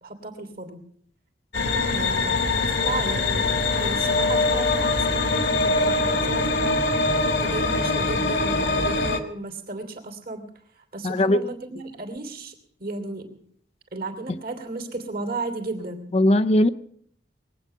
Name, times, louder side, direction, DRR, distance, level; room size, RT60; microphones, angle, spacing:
voice 1, 0.0-0.8 1.9-7.0 7.4-10.5 10.8-13.4 13.9-16.1, right 3 dB, 55° right, 5 dB, 2.8 m, -34 dB
sound 1, 1.5-9.2, left 3 dB, 70° left, 1.7 m, -23 dB
voice 2, 11.0-11.4 16.1-16.7, left 1 dB, 35° left, 10 dB, 0.5 m, -19 dB
21.5 x 8.7 x 6.6 m, 0.64 s
head